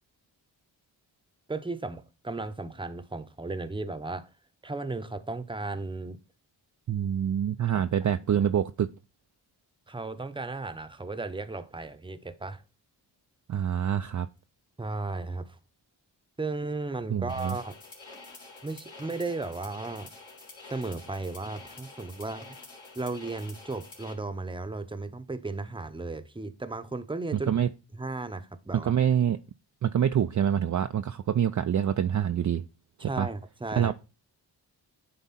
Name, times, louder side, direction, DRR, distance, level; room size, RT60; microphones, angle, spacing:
voice 1, 1.5-4.3 4.6-6.2 7.7-7.8 8.3-8.5 9.9-12.6 14.8-15.6 16.4-17.8 18.6-20.1 20.7-22.6 23.0-27.5 27.9-28.9 33.0-33.9, right 3 dB, 10° right, 0.8 m, -35 dB
voice 2, 6.9-8.9 13.5-14.3 17.1-17.6 27.3-27.7 28.8-29.4 29.8-32.6 33.0-33.3 33.8-33.9, right 9 dB, 40° right, 0.5 m, -26 dB
sound 1, 17.3-24.1, left 3 dB, 80° left, 2.2 m, -48 dB
9.5 x 3.5 x 4.1 m
cardioid pair, 40°, 46 cm